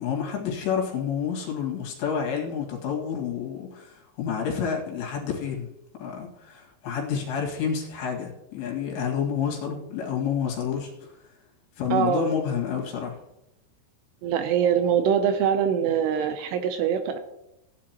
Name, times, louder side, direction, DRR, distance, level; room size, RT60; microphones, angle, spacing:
voice 1, 0.0-5.7 6.0-11.1 11.8-13.2, left 7 dB, 75° left, -1 dB, 4.1 m, -29 dB
voice 2, 11.9-12.2 14.2-17.2, right 8 dB, 80° right, 8 dB, 2.6 m, -23 dB
16.5 x 9.9 x 2.9 m, 0.88 s
omnidirectional pair, 5.2 m